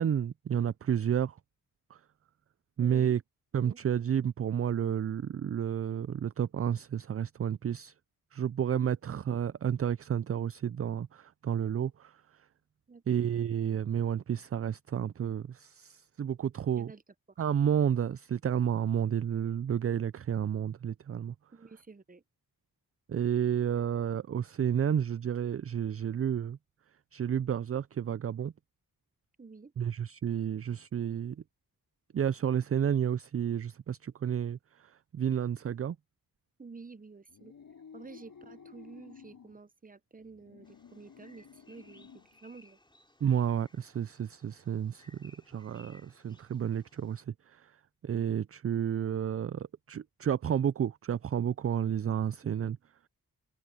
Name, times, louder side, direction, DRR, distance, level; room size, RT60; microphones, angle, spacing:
voice 1, 0.0-1.4 1.9-2.0 2.8-3.2 3.5-7.9 8.3-12.4 13.1-16.9 17.4-21.3 23.1-26.6 27.1-28.5 29.8-31.4 32.1-36.0 43.2-47.7 48.0-52.8, right 9 dB, 40° right, 0.4 m, -31 dB
voice 2, 2.8-3.2 3.5-3.8 9.1-9.2 12.9-13.2 16.8-17.0 21.5-22.2 29.4-29.7 36.6-37.5 37.9-42.8, right 4 dB, 20° right, 0.8 m, -50 dB
sound 1, 37.3-39.6 40.2-42.4, left 6 dB, 65° left, 3.4 m, -54 dB
Bird vocalization bird call bird song, 40.6-47.2, left 2 dB, 10° left, 5.0 m, -62 dB
cardioid pair, 60°, 37 cm